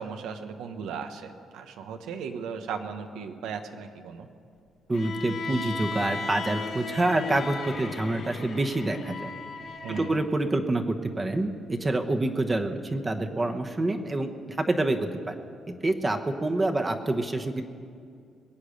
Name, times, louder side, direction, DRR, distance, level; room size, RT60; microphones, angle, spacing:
voice 1, 0.0-4.3 9.8-10.2, right 6 dB, 85° right, 7 dB, 1.0 m, -36 dB
Bowed string instrument, 4.9-10.2, left 4 dB, 60° left, 2.0 m, -36 dB
voice 2, 4.9-9.3 10.0-15.3 15.8-17.6, right 2 dB, 25° right, 5 dB, 1.0 m, -27 dB
21.5 x 8.6 x 6.6 m, 2.3 s
cardioid pair, 90°, 0 cm